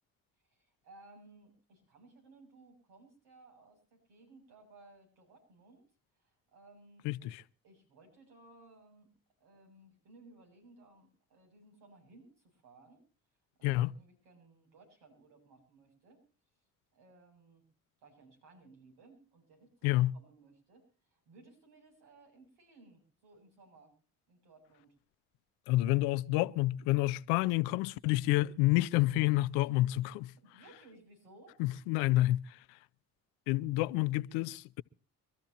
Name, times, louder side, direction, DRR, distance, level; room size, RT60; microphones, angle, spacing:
voice 1, 0.4-5.9 6.1-7.4 7.6-9.1 9.4-13.0 13.6-16.2 16.9-17.7 18.0-24.0 24.3-24.9 30.4-31.6, right 2 dB, 80° right, 7.7 m, -60 dB
voice 2, 7.0-7.4 13.6-13.9 19.8-20.1 25.7-30.3 31.6-32.8 33.5-34.8, left 17 dB, 85° left, 0.6 m, -29 dB
24.5 x 13.5 x 2.9 m
hypercardioid pair, 50°, 39 cm